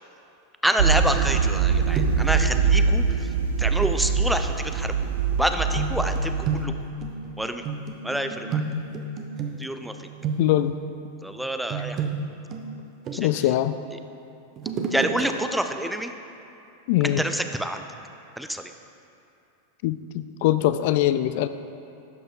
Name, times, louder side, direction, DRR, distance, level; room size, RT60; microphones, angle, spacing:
voice 1, 0.6-3.0 3.6-5.1 5.4-6.7 7.4-7.6 8.0-8.6 9.6-9.9 11.2-12.0 13.1-13.3 14.9-16.1 17.2-17.8 18.4-18.6, right 1 dB, ahead, 7 dB, 0.4 m, -27 dB
sound 1, 0.8-6.7, right 5 dB, 85° right, 0.7 m, -23 dB
sound 2, 1.2-1.7 1.9-2.4 3.8-4.0 5.7-9.9 10.2-10.8 11.7-13.5 14.6-15.2 15.6-15.7, right 4 dB, 35° right, 0.8 m, -31 dB
voice 2, 10.4-10.7 13.2-13.8 16.9-17.2 19.8-21.5, left 13 dB, 60° left, 12 dB, 0.3 m, -22 dB
12.0 x 5.7 x 3.7 m, 2.7 s
hypercardioid pair, 125°, 0 cm